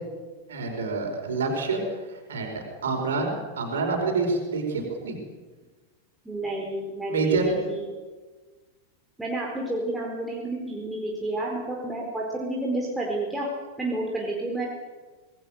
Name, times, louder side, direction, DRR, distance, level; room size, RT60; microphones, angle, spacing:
voice 1, 0.5-5.2 7.1-7.5, right 3 dB, 65° right, 2 dB, 5.2 m, -27 dB
voice 2, 6.2-7.4 7.7-7.9 9.2-13.5 13.8-14.7, right 2 dB, 5° right, -3 dB, 4.3 m, -30 dB
26.0 x 19.5 x 6.6 m, 1.3 s
figure-of-eight pair, 90°, 0 cm